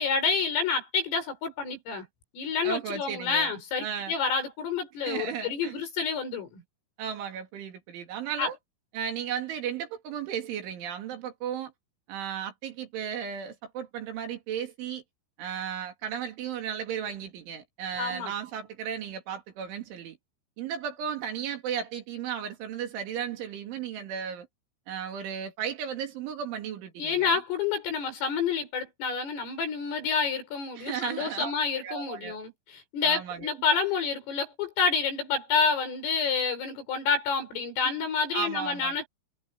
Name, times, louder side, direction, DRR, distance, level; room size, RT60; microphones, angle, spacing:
voice 1, 0.0-2.1 2.3-6.6 8.4-8.5 18.0-18.3 27.0-39.1, left 5 dB, 75° left, 9.5 m, -28 dB
voice 2, 2.6-3.5 3.8-4.2 5.0-5.8 7.0-8.6 8.9-11.7 12.1-15.0 15.4-20.2 20.6-24.5 24.9-27.4 30.8-31.5 31.8-32.4 33.0-33.5 37.8-39.0, right 8 dB, 70° right, 5.1 m, -35 dB
omnidirectional pair, 5.9 m